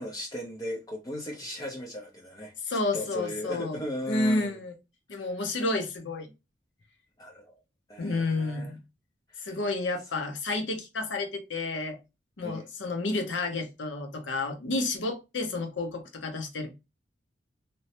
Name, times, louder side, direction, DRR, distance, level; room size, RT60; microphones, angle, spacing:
voice 1, 0.0-2.5 2.9-4.6 5.1-5.3 7.2-7.5 7.9-8.7 9.3-9.5 12.4-12.7, left 1 dB, 20° left, 0.5 m, -37 dB
voice 2, 2.6-3.8 4.1-4.7 5.1-6.3 8.0-8.8 9.4-12.0 12.4-16.7, left 2 dB, 80° left, 0.7 m, -30 dB
2.9 x 2.0 x 2.8 m
head